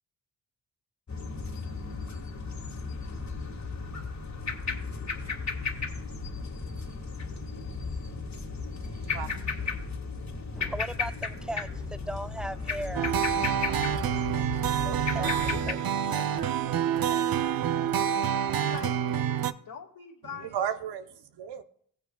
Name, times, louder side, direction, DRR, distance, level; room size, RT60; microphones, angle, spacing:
sound 1, 1.1-15.7, left 4 dB, 45° left, 1.9 m, -35 dB
voice 1, 8.9-9.8 20.3-21.6, right 8 dB, 85° right, 0.9 m, -35 dB
voice 2, 10.5-15.3, right 1 dB, ahead, 0.4 m, -41 dB
sound 2, 12.9-19.5, right 9 dB, 60° right, 0.7 m, -27 dB
voice 3, 15.1-15.8 16.1-20.6, left 5 dB, 65° left, 2.0 m, -45 dB
16.5 x 9.2 x 2.3 m
supercardioid pair, 50°, 40 cm